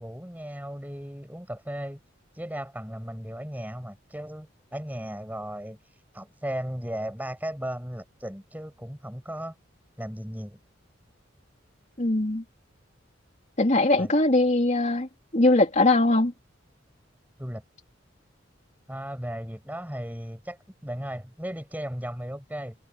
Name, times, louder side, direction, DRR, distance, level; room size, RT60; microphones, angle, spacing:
voice 1, 0.0-2.0 2.4-5.8 6.1-9.5 10.0-10.6 14.0-14.1 17.4-17.6 18.9-22.8, equal, 10° right, 7.8 m, -36 dB
voice 2, 12.0-12.4 13.6-15.1 15.3-16.3, left 2 dB, 40° left, 2.8 m, -21 dB
head